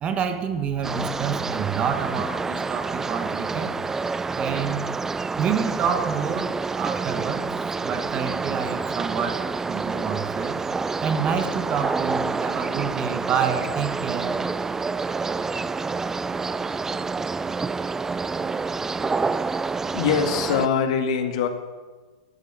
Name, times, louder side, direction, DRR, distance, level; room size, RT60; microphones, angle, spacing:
voice 1, 0.0-3.7 4.3-4.9 5.4-7.5 7.8-10.6 11.0-14.4, right 7 dB, 30° right, 8 dB, 1.5 m, -28 dB
sound 1, 0.8-20.7, right 4 dB, 10° right, 0.4 m, -28 dB
voice 2, 19.9-21.5, left 7 dB, 60° left, 6 dB, 1.9 m, -23 dB
13.0 x 8.3 x 8.7 m, 1.3 s
hypercardioid pair, 105°, 4 cm